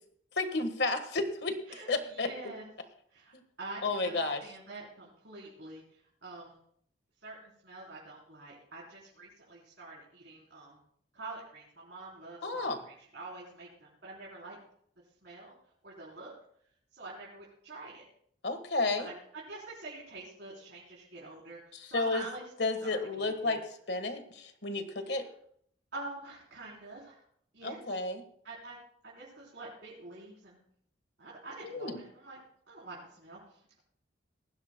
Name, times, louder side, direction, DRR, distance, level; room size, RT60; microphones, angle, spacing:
voice 1, 0.4-1.6 1.9-2.3 3.8-4.4 12.4-12.8 18.4-19.1 21.8-22.2 22.6-23.6 23.9-25.2 27.6-28.2 31.6-32.0, left 3 dB, 65° left, 8 dB, 1.4 m, -32 dB
voice 2, 1.7-2.6 3.1-3.3 3.6-5.8 6.2-6.6 7.2-10.8 11.1-14.6 15.2-15.5 15.8-16.3 16.9-18.0 19.0-22.4 22.8-23.6 25.1-25.2 25.9-27.2 27.5-27.8 28.4-28.8 29.0-30.6 31.2-32.4 32.7-33.8, right 2 dB, 65° right, -5 dB, 3.7 m, -46 dB
19.0 x 15.5 x 2.2 m, 0.66 s
head